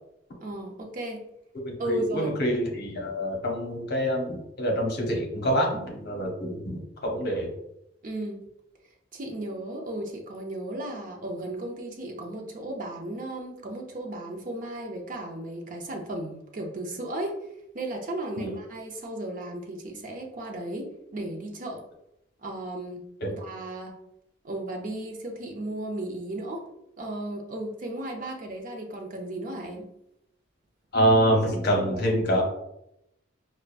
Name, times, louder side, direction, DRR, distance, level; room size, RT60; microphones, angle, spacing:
voice 1, 0.4-1.2 1.8-2.3 8.0-8.4 9.1-17.4 17.7-21.8 22.4-23.0 23.3-23.9 24.4-26.7 27.0-29.9, right 1 dB, 45° right, 1 dB, 0.6 m, -35 dB
voice 2, 1.6-7.5 18.3-18.5 23.2-23.3 30.9-32.4, equal, 55° left, 0 dB, 0.8 m, -26 dB
4.7 x 2.1 x 2.4 m, 0.82 s
head